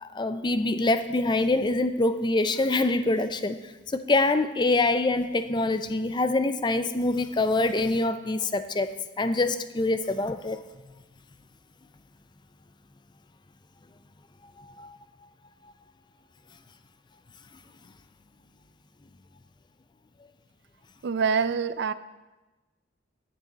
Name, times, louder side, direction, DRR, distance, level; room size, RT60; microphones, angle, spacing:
voice 1, 0.0-3.6 3.9-10.6 14.6-14.9, left 2 dB, 25° left, 11 dB, 0.4 m, -25 dB
voice 2, 21.0-21.9, right 6 dB, 60° right, 14 dB, 0.4 m, -25 dB
14.5 x 7.6 x 4.1 m, 1.1 s
head